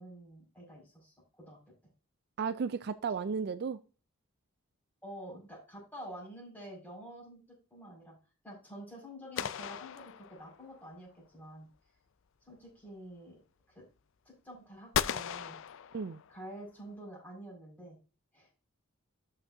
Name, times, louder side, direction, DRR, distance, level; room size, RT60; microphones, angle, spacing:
voice 1, 0.0-1.6 5.0-8.1 8.4-11.7 12.4-13.4 13.7-13.8 14.2-15.6 16.3-18.0 18.3-18.5, right 1 dB, 10° left, 5.4 m, -48 dB
voice 2, 2.4-3.8 15.9-16.2, right 5 dB, 50° right, 0.4 m, -34 dB
sound 1, 9.4-10.8 14.9-16.5, left 8 dB, 65° left, 0.4 m, -36 dB
12.5 x 6.0 x 2.7 m
head